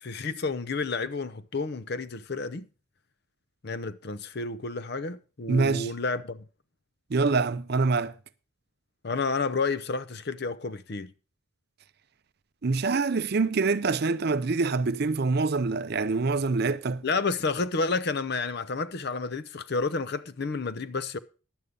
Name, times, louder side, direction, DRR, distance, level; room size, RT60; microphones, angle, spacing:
voice 1, 0.0-2.6 3.6-6.4 9.0-11.1 17.0-21.2, left 4 dB, 50° left, 0.6 m, -30 dB
voice 2, 5.5-5.9 7.1-8.1 12.6-17.0, right 4 dB, 50° right, 0.5 m, -25 dB
11.0 x 8.3 x 5.2 m
head